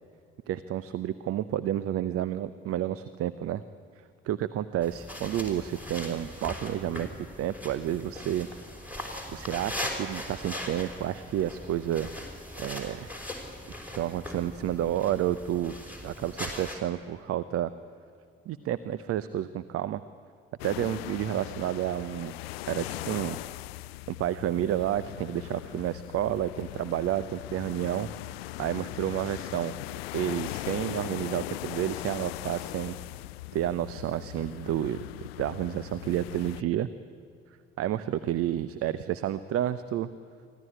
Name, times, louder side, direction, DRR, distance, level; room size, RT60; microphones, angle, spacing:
voice 1, 0.5-3.6 4.2-7.1 7.4-8.5 9.3-12.1 12.6-13.1 13.9-15.7 16.0-17.7 18.5-20.0 20.6-22.3 22.7-23.4 24.2-28.1 28.6-29.7 30.1-32.9 33.5-35.0 35.4-36.9 37.8-40.1, right 11 dB, 45° right, 16 dB, 0.8 m, -30 dB
sound 1, 4.8-16.8, left 1 dB, 5° right, 5.6 m, -39 dB
sound 2, 20.6-36.6, left 18 dB, 70° left, 0.5 m, -39 dB
25.0 x 14.5 x 9.8 m, 2.4 s
figure-of-eight pair, 50°, 31 cm